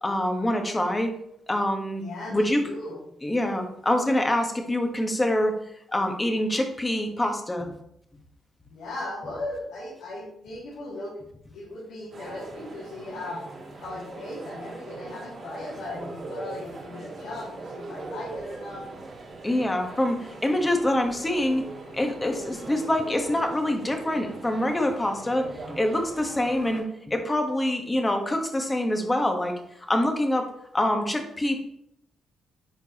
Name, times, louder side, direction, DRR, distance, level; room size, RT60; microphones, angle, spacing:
voice 1, 0.0-1.1 1.5-2.0 2.3-2.6 3.2-5.5 5.9-7.7 19.4-21.6 21.9-29.5 29.9-30.5 30.7-31.6, left 1 dB, 15° left, 4 dB, 1.3 m, -25 dB
voice 2, 2.0-3.0 8.7-11.2 11.5-13.4 13.8-18.9, left 2 dB, 90° left, -8 dB, 2.4 m, -37 dB
sound 1, 12.1-26.8, right 3 dB, 55° right, 2.5 m, -41 dB
10.5 x 4.5 x 2.9 m, 0.73 s
cardioid pair, 90°, 0 cm